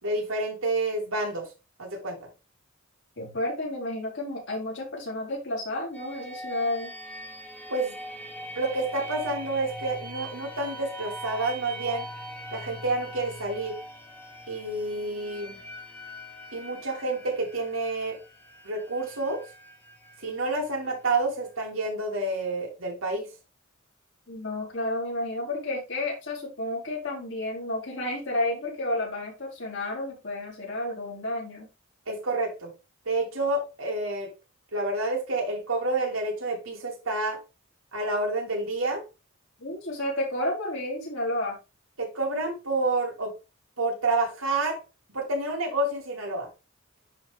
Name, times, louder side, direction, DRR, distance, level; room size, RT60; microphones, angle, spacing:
voice 1, 0.0-1.5 1.8-2.3 7.7-7.9 8.5-12.1 12.5-13.7 14.5-15.6 16.5-18.2 18.6-19.4 20.2-23.3 32.1-32.7 33.0-34.3 34.7-37.4 37.9-39.0 42.0-43.3 43.8-44.8 45.1-46.5, right 2 dB, 90° right, 3.0 m, -29 dB
voice 2, 3.2-6.9 24.3-31.7 39.6-41.6, left 1 dB, 65° left, 3.8 m, -31 dB
sound 1, 5.9-21.6, equal, 10° left, 1.2 m, -42 dB
10.5 x 3.8 x 3.4 m
head